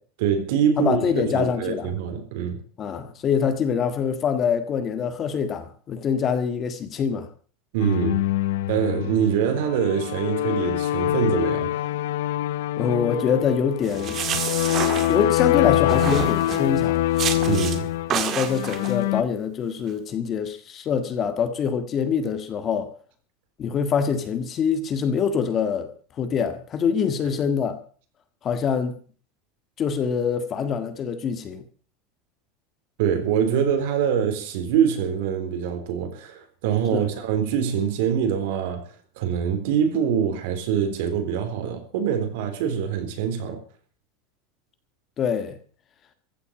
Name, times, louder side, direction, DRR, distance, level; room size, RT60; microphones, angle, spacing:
voice 1, 0.2-2.6 7.7-8.2 8.7-11.9 17.5-17.9 33.0-38.9 39.2-43.6, right 8 dB, 65° right, 3.8 m, -24 dB
voice 2, 0.8-1.9 2.8-7.3 12.8-14.2 15.1-17.1 18.1-22.9 23.6-25.9 26.2-27.8 28.4-29.0 29.8-31.6 36.9-37.1 45.2-45.6, left 7 dB, 25° left, 1.7 m, -25 dB
sound 1, 7.8-19.2, left 14 dB, 90° left, 0.8 m, -24 dB
sound 2, 13.8-15.5 15.9-16.7 17.2-17.8 18.1-18.9, right 8 dB, 25° right, 1.8 m, -28 dB
15.0 x 8.3 x 8.8 m
supercardioid pair, 175°, 0 cm